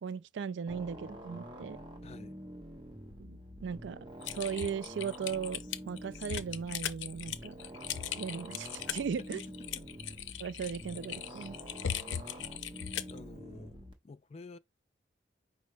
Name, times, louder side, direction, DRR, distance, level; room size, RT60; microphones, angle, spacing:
voice 1, 0.0-1.8 3.2-4.0 4.3-7.5 8.2-9.4 10.4-11.6, right 6 dB, 75° right, 0.3 m, -37 dB
sound 1, 0.7-13.9, equal, 25° right, 1.1 m, -47 dB
voice 2, 2.0-2.4 9.8-9.9 13.1-13.8 14.0-14.6, left 3 dB, 35° left, 0.3 m, -50 dB
Typing, 4.2-13.2, left 9 dB, 90° left, 0.5 m, -39 dB
5.2 x 2.1 x 4.9 m
head